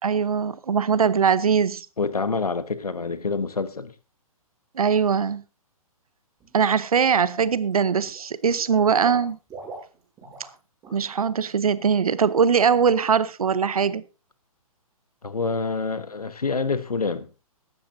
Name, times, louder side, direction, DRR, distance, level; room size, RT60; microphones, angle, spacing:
voice 1, 0.0-1.9 4.8-5.4 6.5-9.4 10.9-14.0, right 6 dB, 75° right, 0.8 m, -21 dB
voice 2, 2.0-3.9 15.2-17.3, left 4 dB, 90° left, 1.1 m, -27 dB
Water / Liquid, 6.4-6.7 7.1-7.7 8.0-10.6 10.8-11.1 11.4-11.5, right 3 dB, 20° right, 7.4 m, -42 dB
16.5 x 12.5 x 2.7 m
figure-of-eight pair, 130°, 19 cm